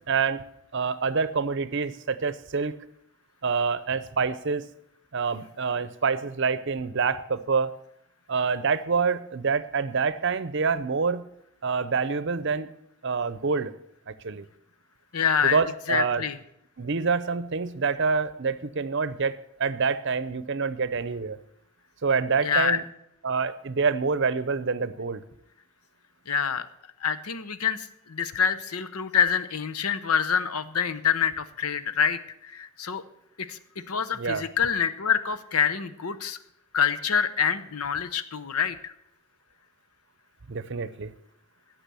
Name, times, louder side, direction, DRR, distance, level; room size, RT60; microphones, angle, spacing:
voice 1, 0.1-0.4 0.7-2.8 3.4-4.7 5.1-7.7 8.3-11.2 11.6-12.7 13.0-13.7 14.1-14.5 15.4-16.3 16.8-21.4 22.0-22.8 23.2-25.2 34.2-34.5 40.5-41.1, right 5 dB, 55° right, 15 dB, 0.6 m, -26 dB
voice 2, 15.1-15.6 15.9-16.4 22.4-22.8 26.3-26.7 27.0-33.0 33.4-33.6 33.9-36.4 36.7-38.9, left 7 dB, 85° left, 12 dB, 0.8 m, -26 dB
16.5 x 6.1 x 6.9 m, 0.76 s
head